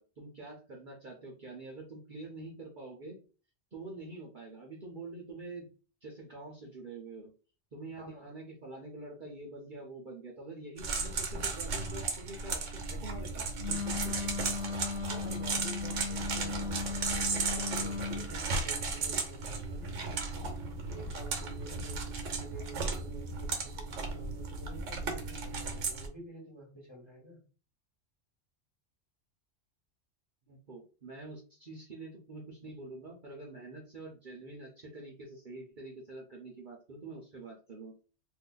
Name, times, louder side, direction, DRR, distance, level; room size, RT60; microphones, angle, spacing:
voice 1, 0.0-3.2 3.7-5.7 6.0-7.3 7.7-14.3 30.5-37.9, right 2 dB, 45° right, -1 dB, 0.8 m, -46 dB
voice 2, 8.0-8.3 15.1-27.4, right 1 dB, 20° left, -3 dB, 1.2 m, -50 dB
sound 1, 10.8-26.1, right 4 dB, 80° right, 1.1 m, -35 dB
Wind instrument woodwind instrument, 13.6-18.3, left 5 dB, 85° left, 0.9 m, -37 dB
2.6 x 2.5 x 3.8 m, 0.36 s
omnidirectional pair, 1.3 m